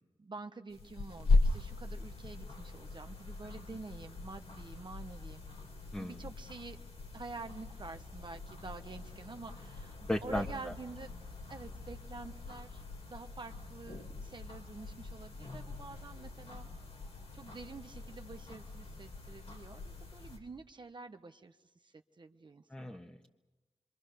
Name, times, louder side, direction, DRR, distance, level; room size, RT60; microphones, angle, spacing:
voice 1, 0.2-5.4 6.0-6.8 7.1-9.9 10.2-11.1 11.5-16.7 17.3-23.0, right 3 dB, 50° right, 6 dB, 1.1 m, -48 dB
sound 1, 0.7-20.4, left 3 dB, 75° left, 3.4 m, -39 dB
voice 2, 10.1-10.7 22.7-23.3, left 1 dB, 10° left, 1 dB, 1.5 m, -36 dB
26.0 x 24.5 x 6.8 m, 1.2 s
cardioid pair, 50°, 10 cm